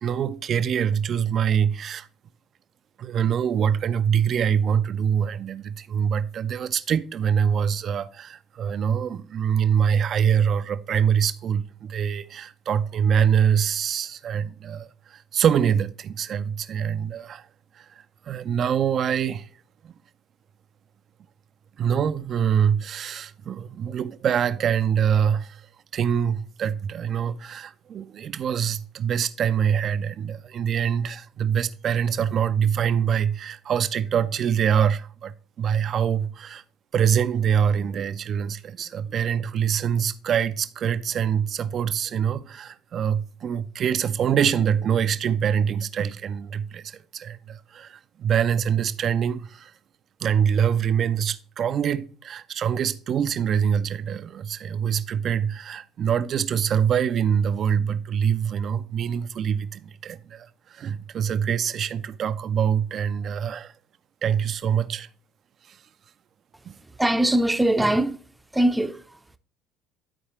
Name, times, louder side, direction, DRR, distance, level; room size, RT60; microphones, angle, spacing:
voice 1, 0.0-2.1 3.0-17.5 17.8-19.5 19.8-19.9 21.8-25.6 25.9-36.6 36.9-49.7 50.2-63.7 64.2-65.1 65.7-65.8 66.7-66.8, right 8 dB, 45° right, 0.5 m, -24 dB
voice 2, 67.0-68.2 68.5-69.2, right 1 dB, 10° right, 0.7 m, -22 dB
11.5 x 4.7 x 3.1 m
figure-of-eight pair, 60°, 0 cm